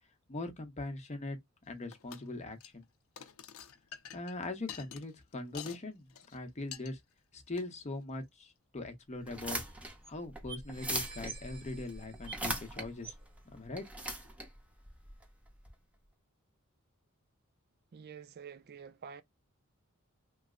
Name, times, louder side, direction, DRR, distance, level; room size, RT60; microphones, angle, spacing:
voice 1, 0.3-1.4 1.7-2.8 4.1-7.0 7.3-9.6 10.1-13.1 13.5-13.8, left 2 dB, 30° left, 0.8 m, -41 dB
sound 1, 1.9-2.3 2.5-2.8 3.2-5.8 6.1-6.4 6.7-6.9 7.5-7.7, left 8 dB, 75° left, 0.5 m, -47 dB
sound 2, 9.2-15.7, right 1 dB, 5° right, 0.6 m, -40 dB
sound 3, 9.2-9.3 9.5-9.6 10.0-10.1 10.5-12.7 13.0-13.3 14.1-14.2, right 5 dB, 25° right, 1.0 m, -49 dB
voice 2, 17.9-19.2, right 6 dB, 45° right, 0.4 m, -48 dB
3.1 x 2.0 x 3.7 m
head